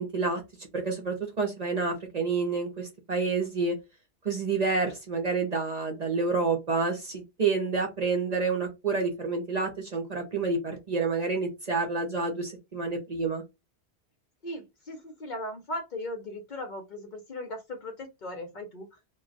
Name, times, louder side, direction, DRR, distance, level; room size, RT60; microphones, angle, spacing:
voice 1, 0.0-3.8 4.2-13.4, right 4 dB, 45° right, 3 dB, 0.7 m, -29 dB
voice 2, 14.4-19.0, left 1 dB, 50° left, 5 dB, 0.7 m, -38 dB
2.2 x 2.2 x 3.7 m, 0.22 s
omnidirectional pair, 1.1 m